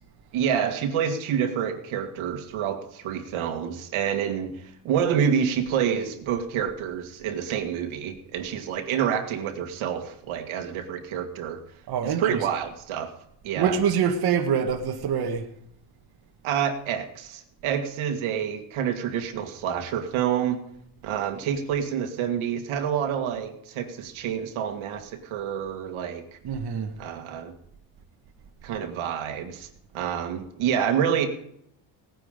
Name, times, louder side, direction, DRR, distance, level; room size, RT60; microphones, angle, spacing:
voice 1, 0.3-11.6 12.0-13.1 13.4-13.8 16.4-20.6 21.0-26.2 27.0-27.5 28.6-29.7 29.9-31.3, right 8 dB, 80° right, 2.0 m, -28 dB
voice 2, 11.9-12.4 13.6-15.5 26.4-26.9, right 7 dB, 50° right, 1.5 m, -25 dB
18.0 x 9.5 x 5.1 m
cardioid pair, 135°, 48 cm